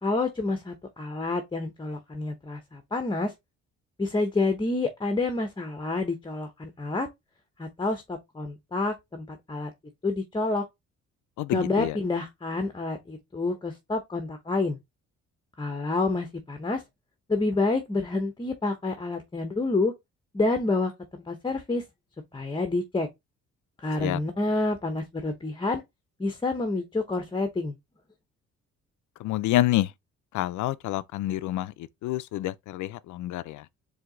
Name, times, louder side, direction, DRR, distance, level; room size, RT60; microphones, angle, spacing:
voice 1, 0.0-3.3 4.0-7.1 7.6-9.7 10.0-10.6 11.5-14.8 15.6-16.8 17.3-19.9 20.3-21.8 22.3-23.1 23.8-25.8 26.2-27.8, left 3 dB, 15° left, 0.8 m, -28 dB
voice 2, 11.4-12.0 24.0-24.2 29.2-29.9 30.3-33.7, left 15 dB, 75° left, 0.5 m, -28 dB
4.5 x 2.8 x 3.8 m
cardioid pair, 90°, 30 cm